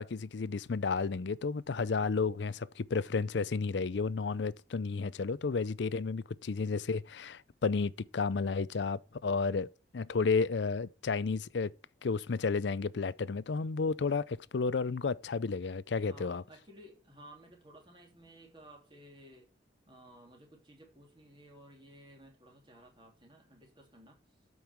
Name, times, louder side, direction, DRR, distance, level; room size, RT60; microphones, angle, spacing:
voice 1, 0.0-9.7 9.9-11.7 12.0-16.4, left 4 dB, 75° left, 0.5 m, -32 dB
voice 2, 16.0-19.5 19.9-24.2, right 1 dB, 25° right, 3.0 m, -56 dB
12.5 x 5.5 x 4.4 m
head